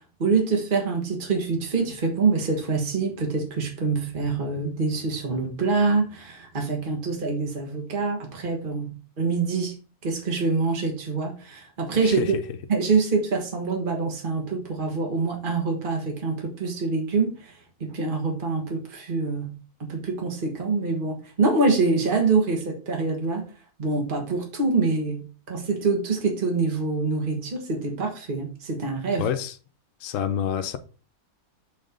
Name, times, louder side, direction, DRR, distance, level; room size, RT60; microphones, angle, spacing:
voice 1, 0.2-9.8 10.0-12.4 12.7-17.5 17.8-19.5 19.8-23.5 23.8-29.3, right 4 dB, 35° right, 1.6 m, -25 dB
voice 2, 12.0-12.4 29.2-29.6 30.0-30.8, left 9 dB, 65° left, 1.1 m, -27 dB
7.5 x 3.6 x 5.2 m
omnidirectional pair, 1.6 m